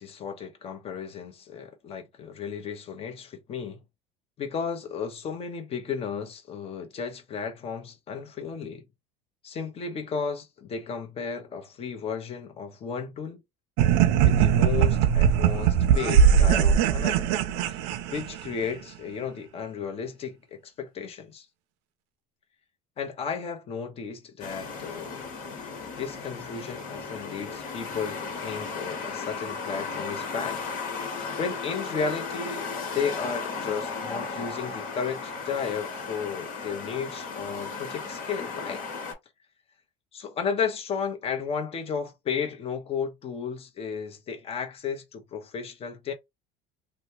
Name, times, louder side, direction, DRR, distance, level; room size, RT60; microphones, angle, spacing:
voice 1, 0.0-3.8 4.4-8.8 9.4-13.4 14.2-17.3 17.7-17.8 18.1-21.5 23.0-25.3 26.0-30.6 31.4-38.9 40.1-46.1, left 6 dB, 35° left, 0.9 m, -34 dB
sound 1, 13.8-18.6, right 8 dB, 70° right, 0.5 m, -20 dB
sound 2, 24.4-39.1, left 4 dB, 55° left, 1.5 m, -35 dB
3.0 x 2.2 x 2.8 m
supercardioid pair, 110°, 17 cm